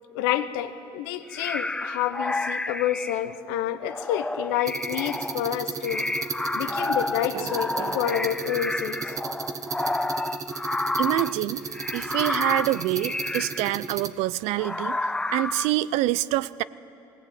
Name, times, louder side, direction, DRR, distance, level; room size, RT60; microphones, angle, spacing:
voice 1, 0.1-6.0 6.5-9.1, left 11 dB, 85° left, 11 dB, 1.0 m, -28 dB
sound 1, 1.3-3.4 3.9-11.4 11.7-13.8 14.6-15.7, left 2 dB, 10° left, 0.4 m, -30 dB
sound 2, 4.7-14.1, right 5 dB, 30° right, 0.9 m, -35 dB
sound 3, 7.3-8.0, right 3 dB, 55° right, 2.5 m, -34 dB
voice 2, 11.0-11.7 11.9-15.0 15.3-16.6, right 16 dB, 75° right, 19 dB, 0.5 m, -26 dB
19.5 x 17.5 x 8.7 m, 2.8 s
supercardioid pair, 100°, 11 cm